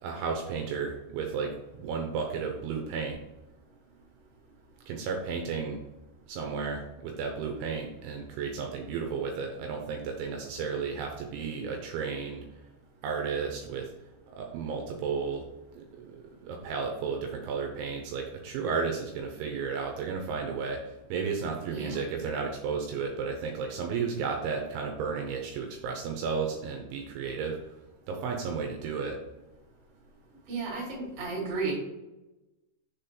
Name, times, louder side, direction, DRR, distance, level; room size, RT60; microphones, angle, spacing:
voice 1, 0.0-3.2 4.9-5.8 6.3-12.5 13.0-13.9 14.3-15.4 15.8-20.8 21.1-27.6 28.1-29.2, right 5 dB, 80° right, 2 dB, 2.9 m, -33 dB
voice 2, 21.7-22.0 30.5-31.7, right 3 dB, 35° right, -3 dB, 2.6 m, -33 dB
6.9 x 4.3 x 5.2 m, 1.0 s
omnidirectional pair, 6.0 m